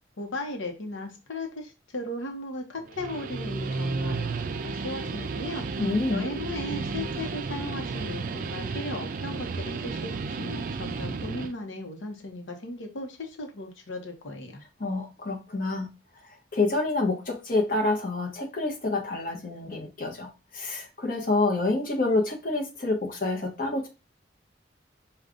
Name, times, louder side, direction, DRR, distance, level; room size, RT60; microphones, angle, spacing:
voice 1, 0.2-5.6 6.1-14.6, left 1 dB, 90° left, 3 dB, 0.9 m, -36 dB
Guitar, 2.8-11.5, right 4 dB, 45° right, 0.3 m, -32 dB
voice 2, 5.8-6.2 14.8-15.9 16.2-23.9, left 2 dB, 45° left, 1 dB, 0.8 m, -27 dB
5.2 x 2.3 x 3.6 m, 0.30 s
head